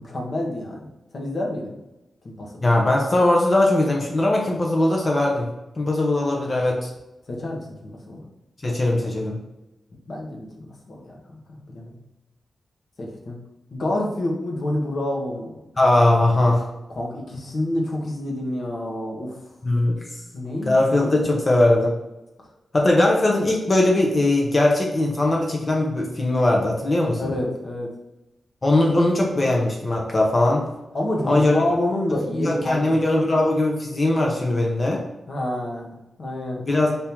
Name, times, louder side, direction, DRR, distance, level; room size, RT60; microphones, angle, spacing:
voice 1, 0.0-1.8 2.2-2.7 7.3-8.3 10.1-11.9 13.0-13.4 13.7-15.6 17.0-19.4 20.3-21.2 27.2-27.9 30.9-33.1 35.3-36.7, left 1 dB, 55° left, -1 dB, 1.0 m, -28 dB
voice 2, 2.6-5.5 5.8-6.9 8.6-9.4 15.8-16.7 19.6-20.0 20.6-21.9 22.7-27.3 28.6-30.7 31.3-31.6 32.3-35.0 36.7-37.0, left 1 dB, 30° left, -1 dB, 0.7 m, -20 dB
3.6 x 2.7 x 4.4 m, 0.95 s
wide cardioid pair, 115°, 0 cm